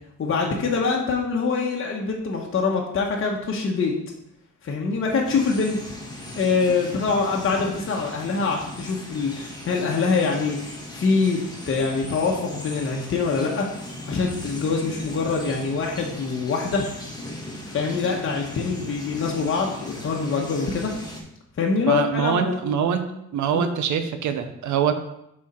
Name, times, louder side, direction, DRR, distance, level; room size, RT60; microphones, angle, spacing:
voice 1, 0.2-3.9 4.6-5.8 6.4-13.7 14.1-16.8 17.7-21.0 21.6-22.9 23.5-23.7, left 4 dB, 45° left, -1 dB, 1.1 m, -24 dB
sound 1, 5.2-21.2, left 1 dB, 15° left, 1.4 m, -38 dB
voice 2, 21.8-23.0 23.3-24.9, right 8 dB, 75° right, 9 dB, 0.7 m, -24 dB
6.2 x 4.3 x 4.3 m, 0.81 s
cardioid pair, 90°, 30 cm